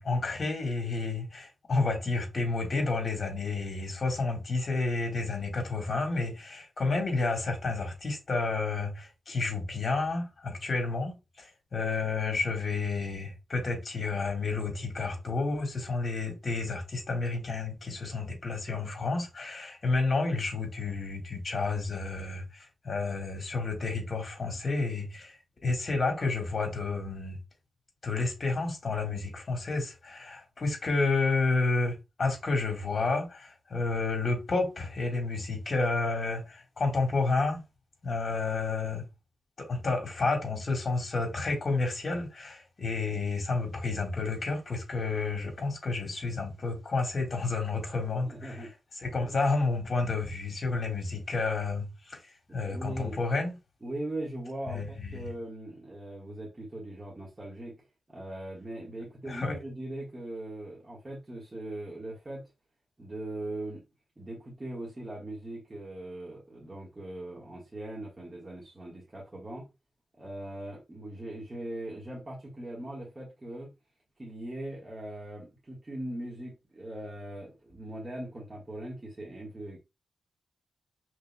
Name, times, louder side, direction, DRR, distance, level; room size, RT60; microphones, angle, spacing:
voice 1, 0.0-27.4 28.0-37.6 38.0-39.0 39.6-48.7 49.0-53.5 54.7-55.3 59.2-59.5, left 3 dB, 45° left, 1.6 m, -30 dB
voice 2, 48.2-48.7 49.2-49.4 52.7-53.1 53.8-62.5 63.0-63.8 64.2-69.7 70.2-73.7 74.2-79.8, right 1 dB, 25° right, 1.4 m, -40 dB
5.3 x 3.3 x 2.2 m
wide cardioid pair, 100°, 0 cm